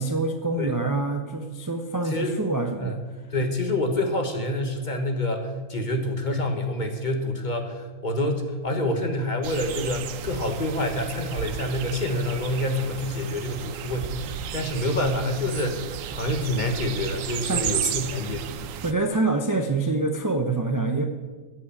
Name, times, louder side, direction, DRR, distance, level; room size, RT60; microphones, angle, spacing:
voice 1, 0.0-3.0 17.4-17.6 18.8-21.0, right 3 dB, 20° right, 5 dB, 0.6 m, -26 dB
voice 2, 2.1-2.4 2.8-2.9 3.3-18.7, left 1 dB, 35° left, 5 dB, 1.4 m, -27 dB
sound 1, 9.4-18.9, right 9 dB, 80° right, 1.0 m, -33 dB
14.5 x 5.8 x 8.3 m, 1.3 s
omnidirectional pair, 1.4 m